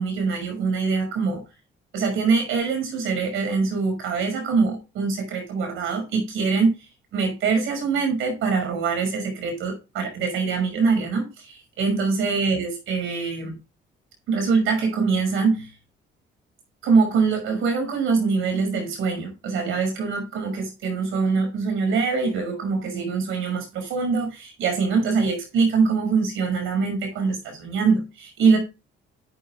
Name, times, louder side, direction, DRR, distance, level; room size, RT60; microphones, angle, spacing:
voice 1, 0.0-1.4 1.9-6.8 7.1-13.6 14.3-15.7 16.8-28.6, right 4 dB, 85° right, 5.9 m, -23 dB
12.5 x 9.4 x 2.5 m
cardioid pair, 90°, 20 cm